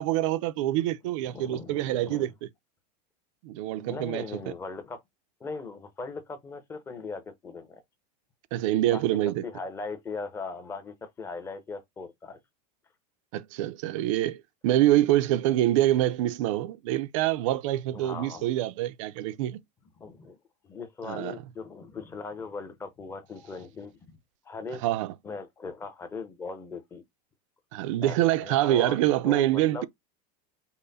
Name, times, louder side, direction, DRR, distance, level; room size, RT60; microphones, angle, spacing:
voice 1, 0.0-2.3 3.4-4.4 8.5-9.4 13.3-19.6 21.0-21.3 24.8-25.1 27.7-29.8, right 14 dB, 50° right, 0.5 m, -25 dB
voice 2, 1.3-2.3 3.7-5.0 5.4-7.8 8.8-12.4 17.9-18.5 20.0-20.4 20.6-24.0 24.4-24.8 25.2-27.0 28.0-29.0 29.2-29.8, left 4 dB, 10° left, 0.8 m, -39 dB
5.5 x 2.1 x 4.0 m
supercardioid pair, 170°, 21 cm